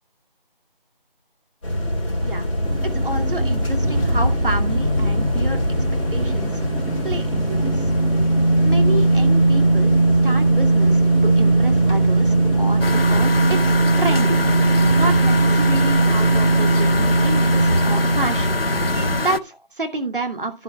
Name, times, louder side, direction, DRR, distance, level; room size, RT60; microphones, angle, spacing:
sound 1, 1.6-19.2, right 2 dB, 35° left, 3.4 m, -19 dB
sound 2, 2.6-18.1, right 4 dB, 15° right, 6.2 m, -33 dB
voice 1, 2.8-5.8 6.1-6.5 7.0-7.8 8.6-10.0 10.2-14.4 14.9-18.6 19.2-20.6, right 2 dB, 65° right, 5 dB, 2.5 m, -29 dB
sound 3, 12.8-19.4, left 4 dB, 85° left, 0.9 m, -26 dB
12.0 x 7.0 x 3.4 m, 0.26 s
figure-of-eight pair, 170°, 29 cm